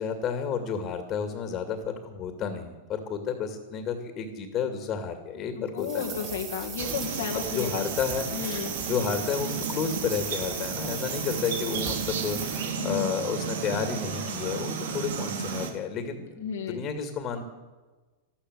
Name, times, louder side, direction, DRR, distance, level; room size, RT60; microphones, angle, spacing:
voice 1, 0.0-6.0 7.3-8.5 8.9-17.4, left 6 dB, 35° left, 7 dB, 2.4 m, -31 dB
voice 2, 5.6-7.8 8.3-8.8 12.0-12.2 12.8-13.1 16.4-16.9, left 7 dB, 80° left, 2 dB, 2.1 m, -33 dB
sound 1, 5.8-12.7, right 6 dB, 35° right, 7.2 m, -38 dB
sound 2, 6.8-15.7, right 6 dB, 80° right, 2.6 m, -33 dB
13.5 x 13.0 x 8.1 m, 1.3 s
hypercardioid pair, 120°, 0 cm